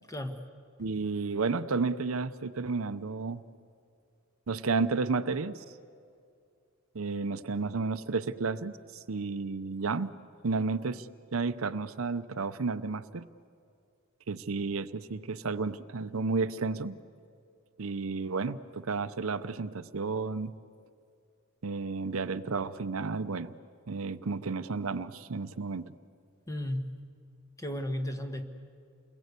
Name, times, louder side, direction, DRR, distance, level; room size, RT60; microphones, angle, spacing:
voice 1, 0.1-0.4 26.5-26.8 27.6-28.5, left 1 dB, 15° left, 6 dB, 1.4 m, -34 dB
voice 2, 0.8-3.4 4.5-5.6 6.9-10.1 10.4-13.3 14.3-17.0 17.8-20.5 21.6-23.5 23.9-25.9, right 4 dB, 75° right, 13 dB, 0.7 m, -32 dB
29.0 x 22.0 x 8.2 m, 2.4 s
head